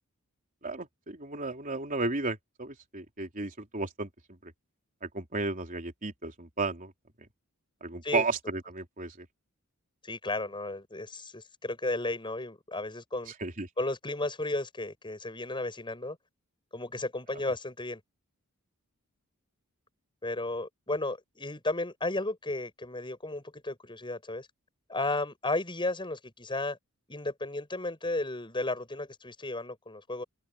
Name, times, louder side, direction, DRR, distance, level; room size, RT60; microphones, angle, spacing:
voice 1, 0.6-4.1 4.4-4.5 5.0-6.9 7.8-9.3 13.4-13.7, right 3 dB, 40° right, 3.7 m, -33 dB
voice 2, 10.0-13.3 13.8-16.2 16.7-18.0 20.2-24.5 24.9-26.8 27.1-30.2, left 2 dB, 20° left, 6.9 m, -34 dB
head